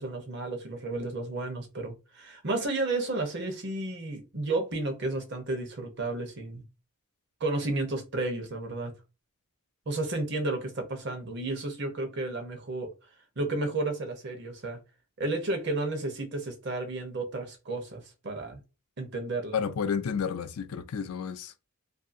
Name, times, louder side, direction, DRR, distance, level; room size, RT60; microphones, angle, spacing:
voice 1, 0.0-6.6 7.4-8.9 9.9-12.9 13.4-14.8 15.2-18.6 19.0-19.6, right 2 dB, 50° right, 0.8 m, -32 dB
voice 2, 19.5-21.7, left 6 dB, 85° left, 0.4 m, -31 dB
2.7 x 2.6 x 2.5 m
head